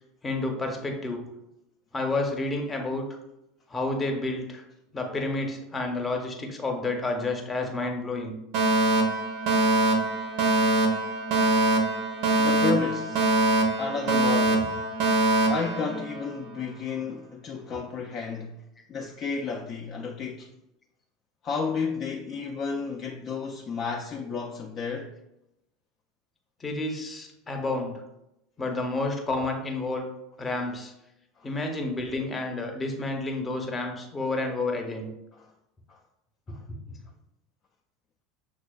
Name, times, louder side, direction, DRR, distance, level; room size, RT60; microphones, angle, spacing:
voice 1, 0.2-1.2 1.9-3.2 3.7-4.6 4.9-8.4 26.6-28.0 28.6-30.1 30.4-30.9 31.4-35.1 36.5-37.0, left 2 dB, 20° left, 0.8 m, -30 dB
Alarm, 8.5-16.6, right 2 dB, 60° right, 0.6 m, -23 dB
voice 2, 12.4-13.4 13.8-14.8 15.5-18.6 18.9-20.5 21.4-25.1 31.4-31.5 35.4-35.5 35.9-36.0 36.5-36.6, left 5 dB, 40° left, 0.4 m, -32 dB
6.2 x 2.3 x 2.3 m
figure-of-eight pair, 75°, 0 cm